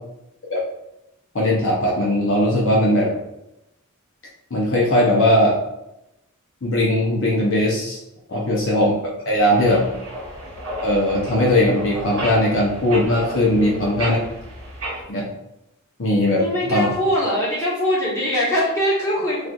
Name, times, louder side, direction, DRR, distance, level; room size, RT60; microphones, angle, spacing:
voice 1, 1.3-3.1 4.5-5.6 6.6-8.0 8.3-8.9 9.2-9.8 10.8-14.2 15.1-15.3 16.0-16.9, left 1 dB, 65° left, -4 dB, 0.7 m, -19 dB
voice 2, 8.3-8.8 9.5-9.9 13.6-14.1 16.3-19.4, equal, 15° left, -8 dB, 1.3 m, -23 dB
sound 1, 9.5-15.0, right 1 dB, 65° right, 1.0 m, -32 dB
4.2 x 2.4 x 2.4 m, 0.87 s
head